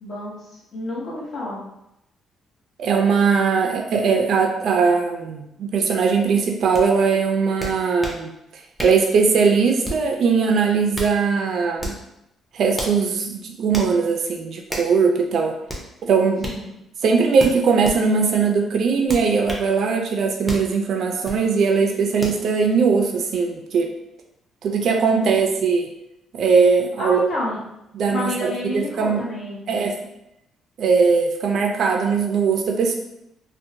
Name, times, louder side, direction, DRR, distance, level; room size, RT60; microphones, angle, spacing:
voice 1, 0.0-1.6 16.4-16.6 27.0-27.6 28.1-29.7, left 1 dB, 45° left, -5 dB, 0.9 m, -29 dB
voice 2, 2.8-8.3 8.8-11.9 12.5-15.5 16.0-16.5 17.0-23.9 24.6-25.9 26.3-27.2 27.9-29.3 29.7-29.9 30.8-32.9, right 5 dB, 65° right, 2 dB, 0.3 m, -20 dB
sound 1, 6.7-6.9 7.6-8.2 8.8-9.0 9.8-10.1 10.7-11.2 11.8-12.0 12.7-13.0 13.7-13.9 14.7-14.9 15.7-15.9 16.4-16.6 17.4-18.0 19.1-19.7 20.5-20.7 21.2-21.4 22.2-22.4, equal, ahead, 0.6 m, -31 dB
2.6 x 2.1 x 2.7 m, 0.85 s
cardioid pair, 105°, 0 cm